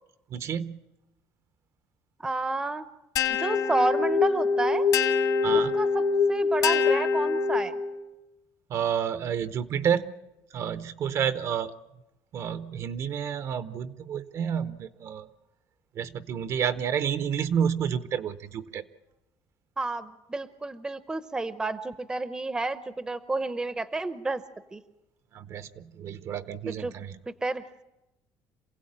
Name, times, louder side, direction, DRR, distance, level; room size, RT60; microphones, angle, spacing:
voice 1, 0.3-0.8 5.4-5.8 8.7-11.7 12.3-15.3 16.0-18.8 25.3-27.2, right 8 dB, 45° right, 13 dB, 0.8 m, -30 dB
voice 2, 2.2-2.8 3.4-4.9 5.7-7.7 19.8-24.4 24.7-24.8 26.7-26.9 27.3-27.6, right 2 dB, 10° right, 13 dB, 0.7 m, -30 dB
sound 1, 3.2-7.9, left 5 dB, 60° left, 1.7 m, -24 dB
27.0 x 16.5 x 8.7 m, 0.98 s
cardioid pair, 155°, 7 cm